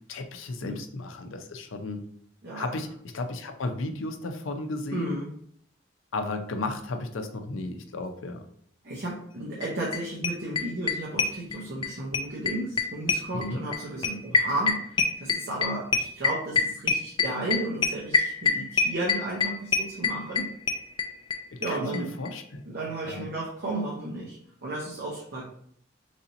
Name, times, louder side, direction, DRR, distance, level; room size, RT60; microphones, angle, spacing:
voice 1, 0.1-2.0 2.5-5.2 6.1-8.4 13.3-13.6 21.5-23.3, left 2 dB, 80° left, 6 dB, 0.5 m, -34 dB
voice 2, 4.9-5.3 8.8-20.5 21.6-22.1 22.7-25.5, right 2 dB, 55° right, -4 dB, 0.8 m, -33 dB
sound 1, 9.6-9.7 9.9-10.0 10.2-11.9 12.1-21.4 21.6-21.7 21.9-22.0 22.2-22.3, left 4 dB, 25° left, 0.4 m, -24 dB
3.3 x 2.8 x 3.9 m, 0.64 s
head